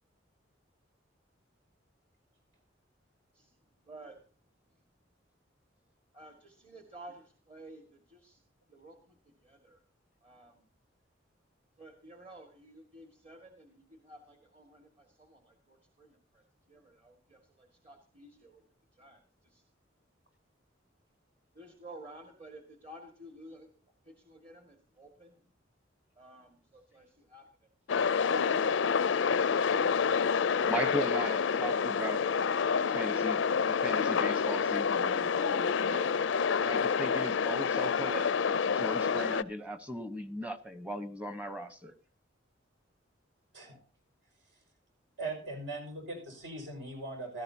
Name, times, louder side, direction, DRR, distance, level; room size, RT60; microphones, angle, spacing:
voice 1, 3.8-4.2 6.1-8.4 8.7-9.8 10.2-10.7 11.8-18.6 18.9-19.6 21.6-23.7 24.0-25.5 26.2-28.5, right 1 dB, 35° right, 4 dB, 1.8 m, -53 dB
sound 1, 27.9-39.4, left 6 dB, 75° left, 0.5 m, -28 dB
voice 2, 30.6-32.3 32.8-36.1 36.6-41.9, equal, 10° right, 10 dB, 1.0 m, -38 dB
voice 3, 45.2-47.4, right 2 dB, 75° right, 3 dB, 5.6 m, -40 dB
16.5 x 13.5 x 2.8 m, 0.39 s
head